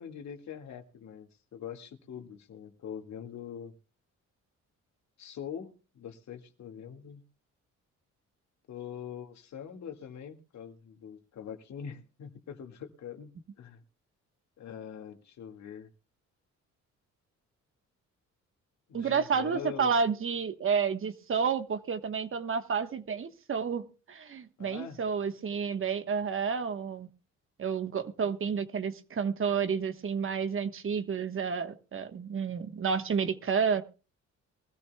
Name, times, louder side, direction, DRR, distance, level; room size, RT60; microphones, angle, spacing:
voice 1, 0.0-3.7 5.2-7.2 8.7-13.3 13.6-13.8 14.6-15.9 18.9-19.9 24.6-25.0, left 8 dB, 65° left, 2.0 m, -43 dB
voice 2, 18.9-27.1 27.6-33.8, right 6 dB, 45° right, 1.3 m, -30 dB
23.0 x 14.0 x 2.3 m
cardioid pair, 90°, 30 cm